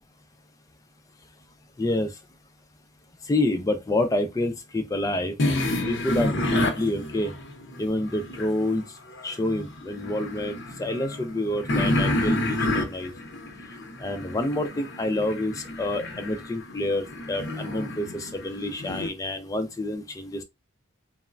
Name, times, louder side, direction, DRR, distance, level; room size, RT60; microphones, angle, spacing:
voice 1, 1.8-2.1 3.3-5.3 5.9-7.3 7.8-8.8 9.2-13.1 14.0-20.4, left 1 dB, 15° left, 0.3 m, -28 dB
sound 1, 5.4-8.7 9.1-19.1, left 1 dB, 60° left, 0.6 m, -30 dB
3.1 x 2.1 x 2.3 m
head